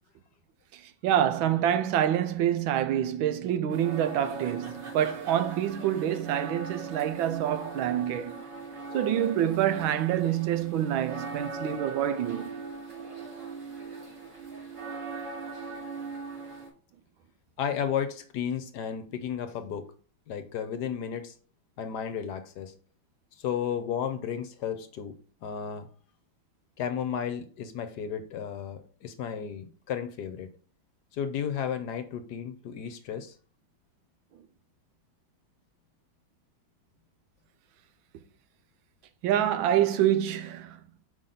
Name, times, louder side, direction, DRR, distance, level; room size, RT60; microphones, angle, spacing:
voice 1, 0.7-8.4 8.9-12.5 39.2-40.8, right 11 dB, 90° right, 1.5 m, -27 dB
sound 1, 3.7-16.7, right 4 dB, 55° right, 2.9 m, -40 dB
voice 2, 17.6-19.9 20.3-21.4 21.8-22.7 23.4-25.2 25.4-25.9 26.8-30.5 31.1-33.3, left 8 dB, 65° left, 1.1 m, -33 dB
5.8 x 5.2 x 3.8 m
omnidirectional pair, 2.1 m